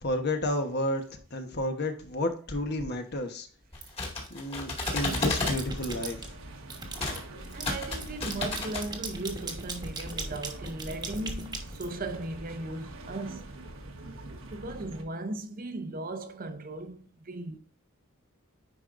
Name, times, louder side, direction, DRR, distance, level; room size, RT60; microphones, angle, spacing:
voice 1, 0.0-3.5 4.3-6.3, left 1 dB, 50° left, 1.1 m, -31 dB
sound 1, 3.7-5.6 7.0-7.2 7.5-8.9, left 2 dB, 25° left, 2.1 m, -32 dB
sound 2, 3.8-4.3 4.7-6.3 6.7-12.5, right 3 dB, 20° right, 1.2 m, -39 dB
sound 3, 5.1-15.0, right 2 dB, 65° right, 1.2 m, -45 dB
voice 2, 7.5-13.5 14.5-17.6, right 2 dB, 40° right, 0.7 m, -37 dB
9.9 x 4.8 x 2.5 m
head